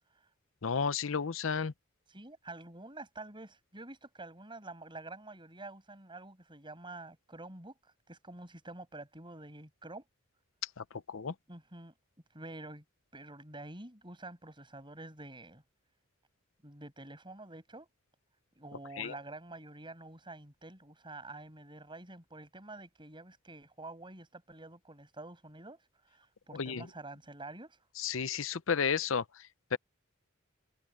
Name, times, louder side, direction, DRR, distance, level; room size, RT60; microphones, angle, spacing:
voice 1, 0.6-1.7 10.8-11.3 19.0-19.1 26.5-26.9 28.0-29.8, left 6 dB, 70° left, 0.7 m, -33 dB
voice 2, 2.1-10.0 11.5-11.9 12.3-12.8 13.1-15.6 16.6-17.9 18.6-27.9, right 2 dB, 25° right, 7.2 m, -48 dB
head